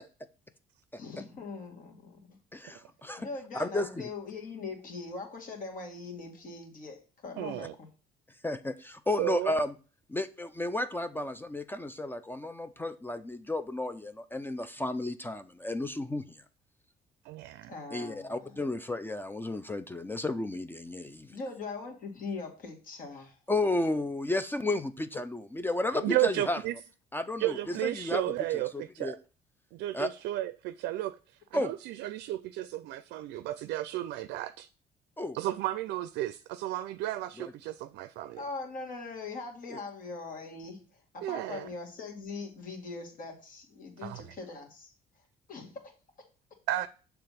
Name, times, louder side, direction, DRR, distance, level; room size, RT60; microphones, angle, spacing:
voice 1, 1.0-2.4 3.2-7.9 17.7-18.6 21.3-23.4 27.6-27.8 38.4-40.8 41.1-44.9 45.5-45.8, left 3 dB, 55° left, 2.0 m, -41 dB
voice 2, 2.5-3.3 3.5-4.1 8.4-9.8 10.1-16.4 17.9-21.4 23.5-26.6 27.1-29.2 29.9-30.1 31.5-31.7 35.2-35.4 37.4-37.5 39.7-39.8, left 2 dB, 10° left, 0.4 m, -33 dB
voice 3, 7.4-7.7 9.2-9.5 17.3-17.7 26.0-26.7 27.4-29.2 29.7-31.2 31.5-34.7 35.3-38.4 41.2-41.7 44.0-44.2 46.7-46.9, right 15 dB, 85° right, 0.4 m, -33 dB
6.9 x 3.4 x 5.7 m
cardioid pair, 110°, 17 cm